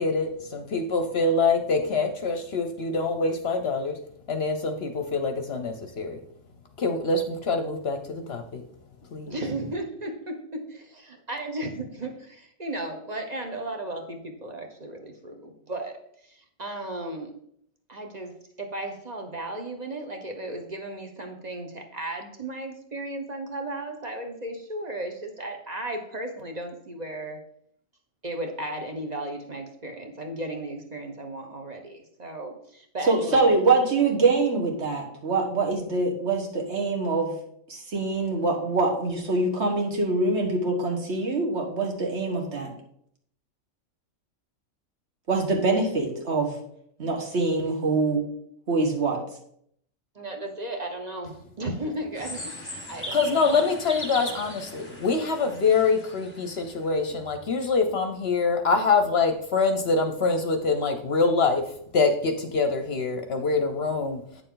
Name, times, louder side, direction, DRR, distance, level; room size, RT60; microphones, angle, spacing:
voice 1, 0.0-4.0 4.3-6.2 6.8-8.6 9.1-9.4 53.1-61.6 61.9-64.2, left 4 dB, 55° left, 6 dB, 0.9 m, -25 dB
voice 2, 9.3-10.7 11.3-17.4 17.9-27.4 28.2-33.5 50.1-53.7, right 1 dB, 35° right, 4 dB, 1.1 m, -35 dB
voice 3, 33.1-37.3 37.7-42.7 45.3-46.6 47.0-48.2 48.7-49.2, right 3 dB, 55° right, 1 dB, 1.7 m, -24 dB
sound 1, 52.2-56.7, equal, 10° left, 1.3 m, -39 dB
8.5 x 6.7 x 3.8 m, 0.68 s
omnidirectional pair, 1.4 m